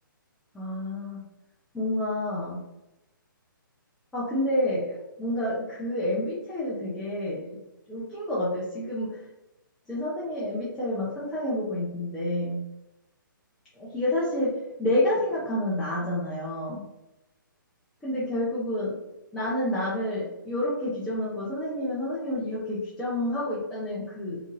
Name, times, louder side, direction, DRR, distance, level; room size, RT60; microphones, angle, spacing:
voice 1, 0.5-1.2 1.7-2.6 4.1-7.6 7.9-9.2 9.9-12.6 13.8-16.8 18.0-19.0 19.3-24.4, left 1 dB, 5° left, -9 dB, 0.3 m, -29 dB
2.8 x 2.5 x 2.5 m, 0.97 s
hypercardioid pair, 155°, 11 cm